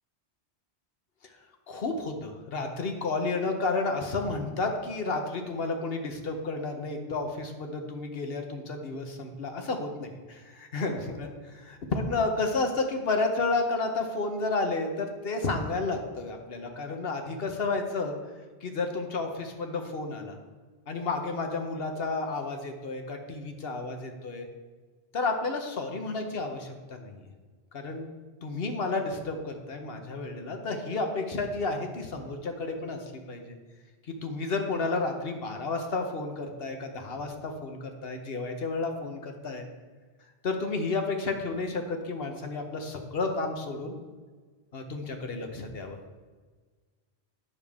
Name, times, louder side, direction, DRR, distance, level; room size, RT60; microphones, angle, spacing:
voice 1, 1.7-18.1 18.6-20.4 20.9-24.5 25.1-27.2 27.7-28.1 28.4-33.0 33.3-33.6 34.2-39.7 40.4-44.0 44.7-46.0, left 3 dB, 60° left, 4 dB, 1.2 m, -31 dB
9.5 x 6.8 x 3.6 m, 1.4 s
omnidirectional pair, 1.1 m